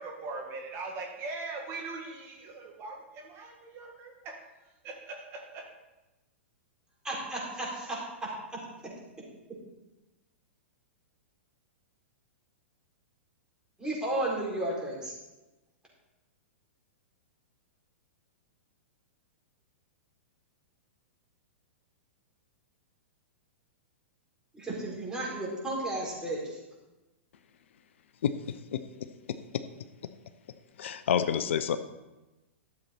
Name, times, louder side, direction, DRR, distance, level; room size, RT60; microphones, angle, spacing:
voice 1, 0.0-5.7, right 3 dB, 35° right, 1 dB, 1.8 m, -41 dB
voice 2, 7.0-8.9 13.8-15.1 24.5-26.6, right 1 dB, 10° right, -5 dB, 4.3 m, -34 dB
voice 3, 28.2-28.8 29.3-29.6 30.8-31.8, left 8 dB, 65° left, 11 dB, 0.6 m, -29 dB
12.5 x 7.4 x 4.4 m, 1.1 s
hypercardioid pair, 110°, 7 cm